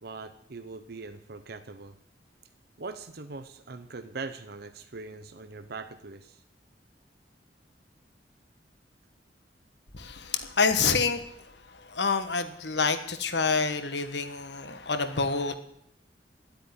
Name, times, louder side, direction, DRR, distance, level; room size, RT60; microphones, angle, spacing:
voice 1, 0.0-2.0 2.8-6.4, right 3 dB, 60° right, 9 dB, 0.8 m, -41 dB
voice 2, 9.9-11.2 11.8-15.6, left 4 dB, 70° left, 9 dB, 1.4 m, -27 dB
12.0 x 8.8 x 9.7 m, 0.73 s
head